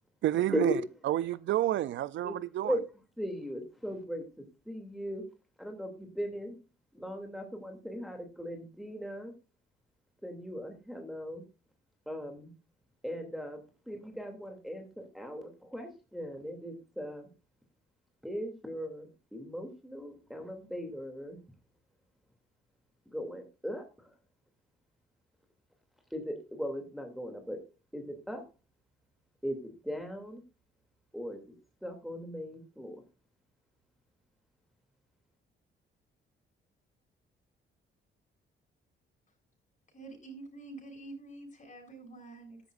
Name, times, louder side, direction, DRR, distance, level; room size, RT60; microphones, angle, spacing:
voice 1, 0.2-0.8 1.0-2.8, right 13 dB, 70° right, 0.5 m, -29 dB
voice 2, 3.2-5.2 5.6-6.6 6.9-9.3 10.2-11.4 12.1-12.5 13.0-17.3 18.2-21.4 23.1-24.1 26.1-27.6 27.9-28.4 29.4-30.4 31.1-31.4 31.8-33.0, equal, ahead, 2.8 m, -38 dB
voice 3, 39.9-42.6, right 2 dB, 35° left, 7.6 m, -47 dB
14.0 x 11.0 x 2.6 m
cardioid pair, 90°, 20 cm